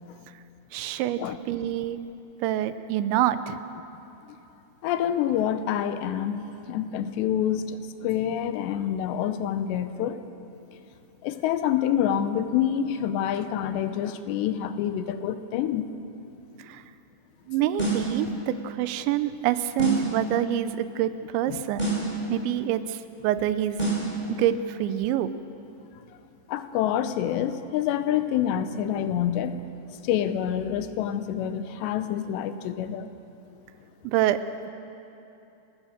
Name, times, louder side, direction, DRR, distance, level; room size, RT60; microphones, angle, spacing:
voice 1, 0.7-1.2 1.5-2.0 2.4-3.6 16.7-16.8 17.5-21.9 22.3-23.8 24.3-25.3 34.0-34.4, right 11 dB, 90° right, 12 dB, 3.1 m, -26 dB
voice 2, 4.8-10.2 11.2-15.9 21.5-21.6 26.5-29.6 30.0-33.1, left 10 dB, 80° left, 10 dB, 2.9 m, -27 dB
sound 1, 17.8-18.2 19.8-20.2 21.8-22.2 23.8-24.2, right 3 dB, 10° left, 5.0 m, -27 dB
29.5 x 15.5 x 6.6 m, 2.9 s
omnidirectional pair, 5.1 m